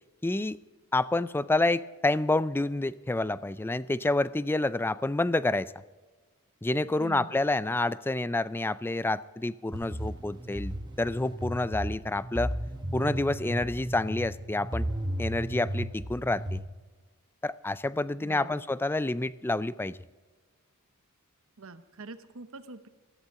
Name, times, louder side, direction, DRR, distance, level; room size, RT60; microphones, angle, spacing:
voice 1, 0.2-0.6 0.9-5.7 6.6-12.5 12.9-14.9 15.2-16.6 17.4-20.0, left 2 dB, 10° left, 16 dB, 0.3 m, -28 dB
voice 2, 7.0-7.4 18.2-18.6 21.6-22.9, right 3 dB, 65° right, 11 dB, 1.0 m, -44 dB
sound 1, 9.7-16.6, right 1 dB, 20° right, 1.4 m, -35 dB
17.0 x 14.5 x 3.7 m, 1.3 s
head